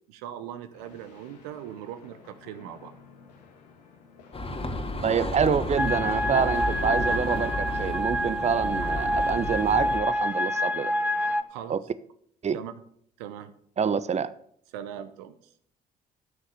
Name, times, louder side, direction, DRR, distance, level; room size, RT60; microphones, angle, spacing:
voice 1, 0.1-2.9 11.5-11.8 12.5-12.7 13.2-13.5 14.7-15.4, right 10 dB, 75° right, 11 dB, 0.9 m, -40 dB
sound 1, 0.7-11.4, left 5 dB, 85° left, 1.7 m, -51 dB
sound 2, 4.3-10.0, left 2 dB, 30° left, 2.0 m, -32 dB
voice 2, 5.0-10.9 11.7-11.8 12.4-12.6 13.8-14.3, right 7 dB, 35° right, 15 dB, 0.7 m, -26 dB
sound 3, 5.8-11.4, equal, 5° right, 1.0 m, -27 dB
12.5 x 6.5 x 6.8 m, 0.66 s
hypercardioid pair, 45°, 21 cm